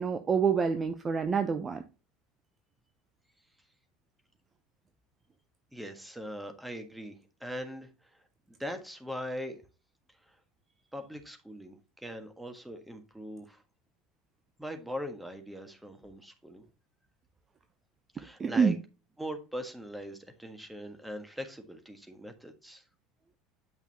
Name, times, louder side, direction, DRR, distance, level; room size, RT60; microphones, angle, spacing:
voice 1, 0.0-1.8 18.4-18.7, right 6 dB, 25° right, 8 dB, 0.7 m, -27 dB
voice 2, 5.7-7.1 7.4-9.6 10.2-10.4 10.9-13.6 14.6-16.6 18.1-18.8 19.2-22.8, equal, 5° right, 6 dB, 1.5 m, -41 dB
8.9 x 5.6 x 2.8 m, 0.32 s
figure-of-eight pair, 70°, 0 cm